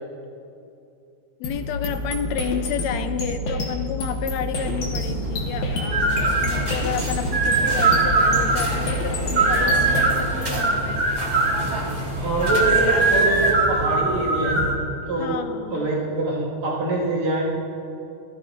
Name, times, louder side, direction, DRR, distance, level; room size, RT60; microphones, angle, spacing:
voice 1, 1.4-11.0 15.2-15.9, left 8 dB, 80° left, 9 dB, 1.7 m, -31 dB
sound 1, 1.4-10.1, left 1 dB, 50° left, 1.7 m, -28 dB
sound 2, 4.5-14.7, right 3 dB, 50° right, 1.1 m, -22 dB
sound 3, 6.1-13.5, right 1 dB, 30° right, 0.8 m, -33 dB
voice 2, 12.1-14.7 15.1-15.4 15.7-17.4, right 2 dB, 70° right, -6 dB, 2.9 m, -24 dB
15.0 x 13.5 x 2.4 m, 2.6 s
omnidirectional pair, 3.3 m